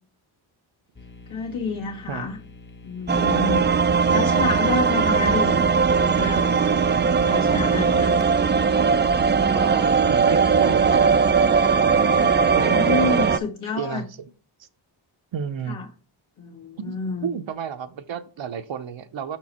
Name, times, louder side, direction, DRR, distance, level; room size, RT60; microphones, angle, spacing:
sound 1, 1.0-9.9, left 3 dB, 25° left, 0.7 m, -46 dB
voice 1, 1.3-2.4 2.8-3.6 4.1-5.6 5.9-6.6 7.0-8.2 12.1-14.0 15.7-15.9 16.4-17.3, left 4 dB, 75° left, 1.9 m, -29 dB
sound 2, 3.1-13.4, right 5 dB, 25° right, 0.3 m, -19 dB
voice 2, 9.5-11.2 12.6-13.2 13.8-14.1 14.6-14.7 15.3-15.8 16.8-19.4, right 7 dB, 65° right, 0.7 m, -32 dB
5.7 x 4.5 x 4.2 m
cardioid pair, 70°, 49 cm